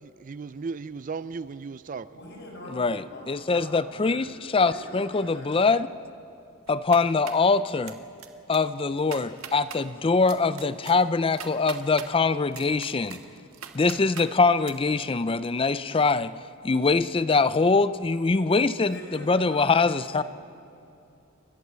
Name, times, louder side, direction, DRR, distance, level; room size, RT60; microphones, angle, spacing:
voice 1, 0.0-2.1, right 4 dB, 40° right, 0.4 m, -36 dB
voice 2, 2.1-5.5 18.9-20.2, equal, 55° left, 5.9 m, -43 dB
voice 3, 2.7-5.9 6.7-8.0 8.5-13.2 13.7-16.3 16.6-20.2, left 4 dB, 25° left, 0.4 m, -23 dB
sound 1, 6.7-7.5 7.9-8.3 8.5-8.6 9.0-9.8 10.3-12.1 12.5-14.3 14.6-14.7, right 8 dB, 80° right, 1.5 m, -41 dB
29.0 x 12.5 x 7.5 m
head